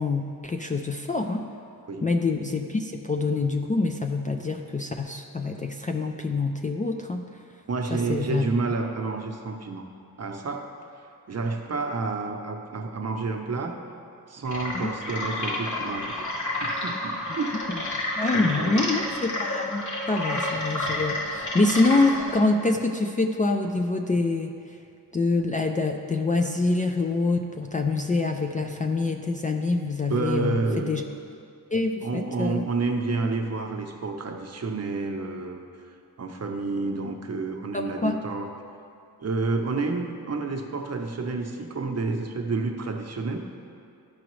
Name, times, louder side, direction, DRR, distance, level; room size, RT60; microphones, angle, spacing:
voice 1, 0.0-1.5 2.0-7.2 7.9-8.5 14.7-14.9 17.7-17.8 18.2-24.8 25.1-31.0 31.7-32.7 37.7-38.2, left 3 dB, 20° left, 4 dB, 0.4 m, -26 dB
voice 2, 7.7-9.8 10.2-10.7 11.3-13.8 14.3-16.1 16.6-17.6 18.3-18.9 30.1-31.0 32.0-35.6 36.2-38.5 39.2-43.4, right 3 dB, 45° right, 3 dB, 0.8 m, -29 dB
sound 1, 14.4-22.4, left 1 dB, 50° left, 1.3 m, -30 dB
13.0 x 4.9 x 3.1 m, 2.5 s
cardioid pair, 90°, 37 cm